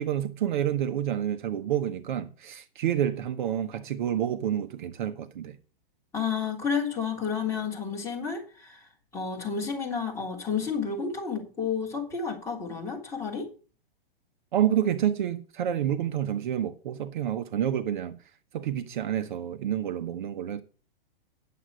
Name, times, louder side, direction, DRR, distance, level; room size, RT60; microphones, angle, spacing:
voice 1, 0.0-5.6 14.5-18.2 18.5-20.6, right 10 dB, 55° right, 0.9 m, -28 dB
voice 2, 6.1-8.8 9.1-13.5, left 6 dB, 10° left, 3.2 m, -31 dB
9.9 x 7.7 x 6.1 m
hypercardioid pair, 155°, 29 cm